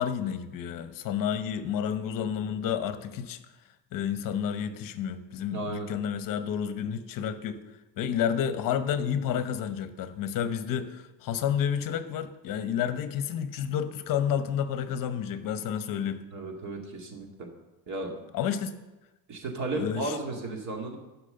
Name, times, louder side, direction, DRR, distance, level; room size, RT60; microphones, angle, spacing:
voice 1, 0.0-3.4 3.9-7.6 8.0-16.2 18.3-18.8 19.8-20.2, left 8 dB, 55° left, 10 dB, 1.0 m, -30 dB
voice 2, 5.5-5.9 16.3-17.5 17.9-18.2 19.3-21.0, right 2 dB, 40° right, 2 dB, 2.4 m, -34 dB
12.5 x 6.0 x 6.8 m, 1.0 s
cardioid pair, 130°, 41 cm